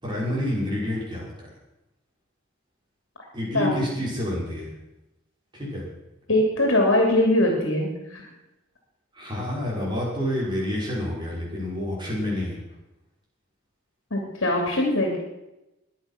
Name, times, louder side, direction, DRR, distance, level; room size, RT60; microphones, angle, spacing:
voice 1, 0.0-1.5 3.3-4.7 5.5-5.9 9.1-12.6, left 1 dB, 20° right, -5 dB, 6.2 m, -28 dB
voice 2, 6.3-8.2 14.1-15.2, left 1 dB, 65° left, 1 dB, 3.1 m, -21 dB
21.5 x 8.4 x 6.1 m, 0.94 s
head